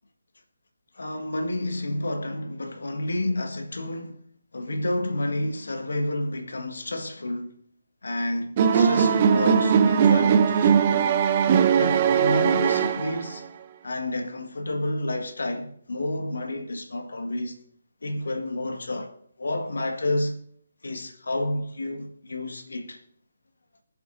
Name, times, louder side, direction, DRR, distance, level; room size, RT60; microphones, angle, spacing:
voice 1, 0.9-4.2 4.5-7.5 8.0-11.2 11.7-13.4 13.8-17.6 18.0-19.1 19.4-20.4 20.8-23.0, left 1 dB, 85° left, 1.7 m, -30 dB
sound 1, 8.6-13.4, right 7 dB, 30° right, 0.6 m, -20 dB
23.5 x 7.9 x 2.7 m
hypercardioid pair, 160°, 0 cm